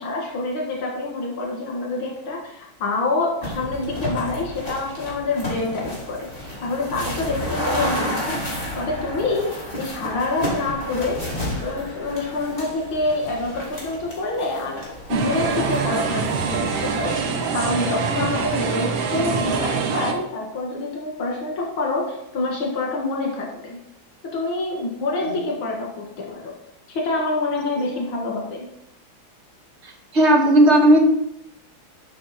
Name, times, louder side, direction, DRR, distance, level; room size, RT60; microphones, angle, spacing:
voice 1, 0.0-6.3 6.6-11.2 11.6-17.1 17.5-23.8 24.3-25.9 26.2-26.5 26.9-28.7, left 2 dB, 85° left, -1 dB, 2.6 m, -26 dB
sound 1, 3.4-17.2, equal, 20° left, 3.1 m, -31 dB
sound 2, 15.1-20.1, right 5 dB, 70° right, 1.7 m, -24 dB
voice 2, 29.8-31.0, right 1 dB, 35° right, 1 dB, 1.7 m, -15 dB
11.5 x 5.7 x 4.2 m, 0.78 s
omnidirectional pair, 2.2 m